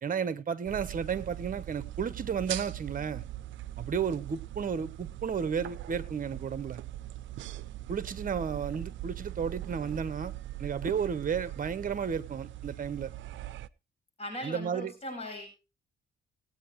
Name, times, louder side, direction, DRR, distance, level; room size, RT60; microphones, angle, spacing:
voice 1, 0.0-3.2 3.8-6.8 7.9-10.3 10.6-13.1 14.4-14.9, right 7 dB, 45° right, 1.2 m, -33 dB
sound 1, 0.6-13.7, right 14 dB, 70° right, 0.6 m, -41 dB
voice 2, 14.2-15.5, left 1 dB, 30° left, 8.0 m, -39 dB
19.5 x 9.0 x 3.2 m
cardioid pair, 90°, 20 cm